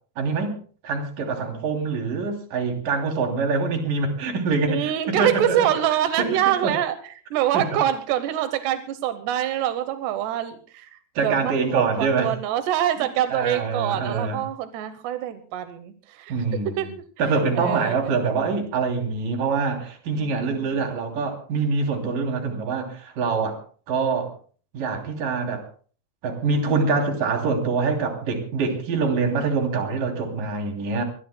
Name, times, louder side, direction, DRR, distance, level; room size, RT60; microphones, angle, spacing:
voice 1, 0.2-0.6 0.8-5.7 6.2-6.3 6.6-6.7 7.5-7.6 11.2-12.3 13.3-14.4 16.3-16.9 17.2-23.6 23.9-24.3 24.7-25.6 26.2-31.0, right 4 dB, 55° right, 3 dB, 4.5 m, -25 dB
voice 2, 4.7-7.0 7.3-16.3 16.6-16.9 17.2-17.3 17.6-18.2 20.2-20.8, right 11 dB, 90° right, 10 dB, 3.1 m, -25 dB
24.5 x 20.5 x 2.2 m, 0.42 s
omnidirectional pair, 4.7 m